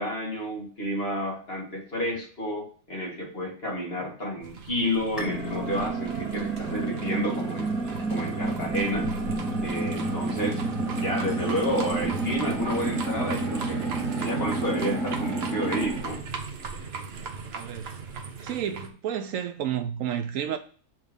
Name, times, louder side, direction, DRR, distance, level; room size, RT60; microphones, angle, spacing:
voice 1, 0.0-7.7 8.1-9.1 9.6-10.6 11.0-13.9 14.2-16.3, equal, 45° left, 2.2 m, -30 dB
sound 1, 4.4-18.9, right 4 dB, 50° right, 1.0 m, -37 dB
sound 2, 5.2-16.1, right 2 dB, ahead, 1.7 m, -30 dB
voice 2, 17.5-18.0 18.4-20.6, right 9 dB, 75° right, 0.9 m, -31 dB
6.2 x 3.5 x 5.2 m
omnidirectional pair, 1.5 m